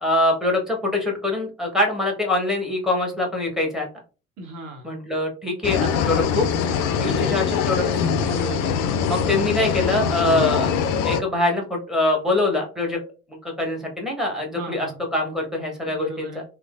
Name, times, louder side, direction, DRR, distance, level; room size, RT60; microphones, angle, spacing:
voice 1, 0.0-3.9 4.8-6.5 7.0-8.0 9.1-10.7 11.0-13.0 13.4-16.4, left 2 dB, ahead, 0 dB, 1.1 m, -24 dB
voice 2, 4.4-4.9 8.2-9.0 14.5-15.0 15.8-16.4, right 2 dB, 45° right, 3 dB, 1.1 m, -37 dB
sound 1, 5.6-11.2, left 7 dB, 45° left, 0.4 m, -23 dB
3.0 x 2.1 x 2.4 m, 0.34 s
figure-of-eight pair, 60°, 42 cm